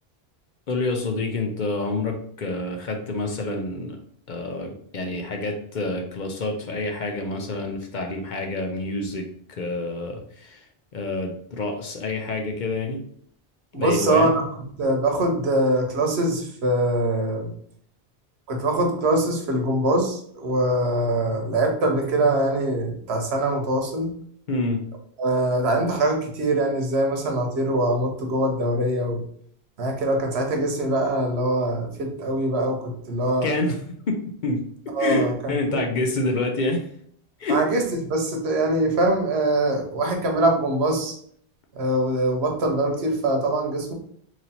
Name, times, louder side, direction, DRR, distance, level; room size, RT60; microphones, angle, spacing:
voice 1, 0.7-4.0 4.3-10.6 10.9-13.0 13.7-14.3 24.5-24.8 33.4-33.7 34.1-36.9 37.4-37.6, left 2 dB, 55° left, 3 dB, 0.7 m, -27 dB
voice 2, 13.7-14.5 14.8-17.5 18.5-24.1 25.2-29.2 29.8-33.5 34.9-35.8 37.5-41.2 41.7-43.9, right 1 dB, 85° right, 3 dB, 1.1 m, -23 dB
3.1 x 2.7 x 4.0 m, 0.63 s
omnidirectional pair, 1.1 m